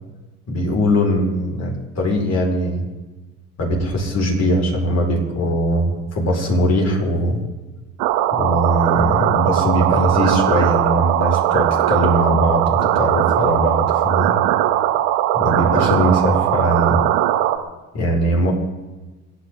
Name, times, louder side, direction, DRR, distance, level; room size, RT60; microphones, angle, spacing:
voice 1, 0.5-2.9 3.6-7.4 8.3-14.3 15.3-17.0 17.9-18.5, equal, 50° left, 0 dB, 5.3 m, -20 dB
sound 1, 8.0-17.6, right 12 dB, 75° right, 1.5 m, -19 dB
26.5 x 10.0 x 3.9 m, 1.2 s
supercardioid pair, 75°, 35 cm